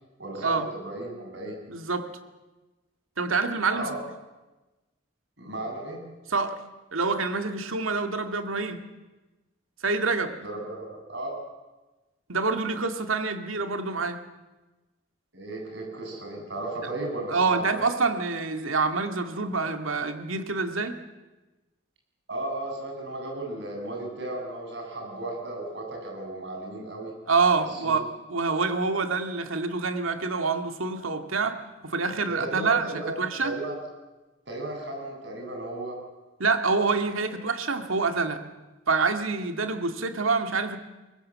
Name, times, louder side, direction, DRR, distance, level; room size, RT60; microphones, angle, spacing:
voice 1, 0.2-1.6 3.7-3.9 5.4-6.0 10.4-11.4 15.3-17.8 22.3-27.1 27.7-28.0 32.3-33.8 34.5-36.0, right 2 dB, 60° right, 0 dB, 7.8 m, -35 dB
voice 2, 1.7-2.1 3.2-3.9 6.3-6.6 6.9-8.8 9.8-10.3 12.3-14.2 17.3-21.0 27.3-31.6 31.8-32.9 33.2-33.5 36.4-38.4 38.9-40.8, right 4 dB, 85° right, 7 dB, 2.1 m, -26 dB
23.5 x 20.0 x 7.6 m, 1.1 s
head